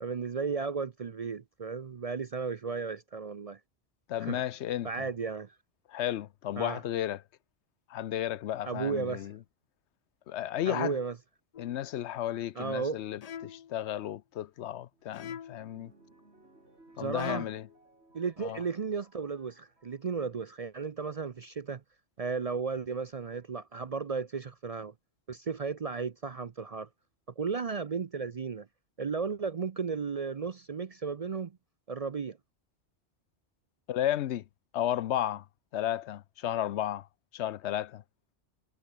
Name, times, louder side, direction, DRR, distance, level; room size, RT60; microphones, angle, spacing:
voice 1, 0.0-3.6 4.2-4.4 4.8-5.5 6.6-6.8 8.7-9.3 10.7-11.1 12.6-13.0 17.0-17.5 18.1-21.8 22.2-24.9 25.3-26.9 27.4-28.7 29.0-31.5 31.9-32.4, right 5 dB, 45° right, 0.5 m, -34 dB
voice 2, 4.1-5.1 5.9-7.2 7.9-9.4 10.3-11.0 11.6-15.9 17.0-17.7 18.4-18.6 33.9-34.4 34.7-35.4 35.7-37.1 37.3-38.0, left 12 dB, 75° left, 0.9 m, -33 dB
sound 1, 11.5-11.9 13.2-13.8 15.1-15.8 17.2-17.7, left 8 dB, 50° left, 0.5 m, -43 dB
sound 2, 14.4-20.0 20.8-21.2 22.4-22.5 23.2-23.6 25.7-26.3 27.0-27.1 27.3-27.4, right 2 dB, 70° right, 5.6 m, -62 dB
omnidirectional pair, 1.2 m